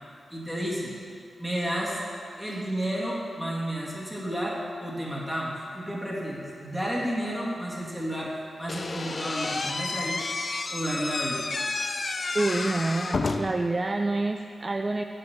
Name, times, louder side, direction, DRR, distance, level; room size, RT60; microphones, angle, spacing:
voice 1, 0.3-1.0 1.4-2.0 2.4-8.3 8.6-10.2 10.7-11.5, equal, 5° right, -5 dB, 2.0 m, -31 dB
Slam / Squeak, 8.7-13.7, left 3 dB, 45° left, 0.5 m, -30 dB
voice 2, 12.3-15.0, right 2 dB, 30° right, 5 dB, 0.3 m, -27 dB
9.4 x 4.9 x 7.0 m, 2.4 s
wide cardioid pair, 105°, 0 cm